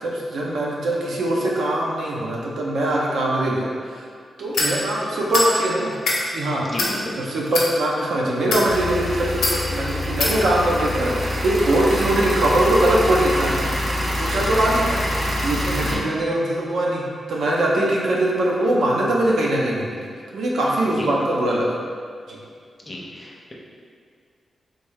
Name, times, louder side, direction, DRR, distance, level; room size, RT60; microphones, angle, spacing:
voice 1, 0.0-4.1 4.4-5.9 6.3-6.7 7.2-13.6 14.2-15.0 15.4-21.8 22.3-22.4, right 1 dB, 85° right, -4 dB, 0.6 m, -22 dB
sound 1, 4.5-4.7 5.3-5.5 5.9-6.2 6.7-6.9 7.5-7.7 8.4-8.7 9.4-9.6 10.2-10.3, left 2 dB, 90° left, 0.7 m, -22 dB
voice 2, 6.6-7.1 15.8-16.0 21.0-21.1 22.9-23.5, left 1 dB, 20° left, -4 dB, 0.5 m, -33 dB
sound 2, 8.7-16.0, left 1 dB, 35° right, 0.5 m, -25 dB
3.3 x 2.6 x 3.5 m, 2.1 s
wide cardioid pair, 115°, 0 cm